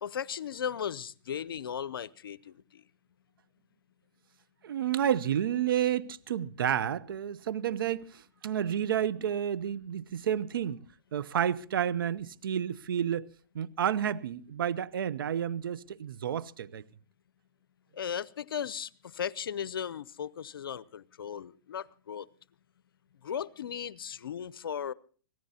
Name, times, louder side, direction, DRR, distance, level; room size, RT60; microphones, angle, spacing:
voice 1, 0.0-2.8 17.9-22.3 23.2-24.9, left 8 dB, 80° left, 0.6 m, -36 dB
voice 2, 4.6-10.8 11.1-13.3 13.5-16.8, right 9 dB, 75° right, 0.7 m, -30 dB
24.5 x 16.5 x 2.8 m
hypercardioid pair, 130°, 12 cm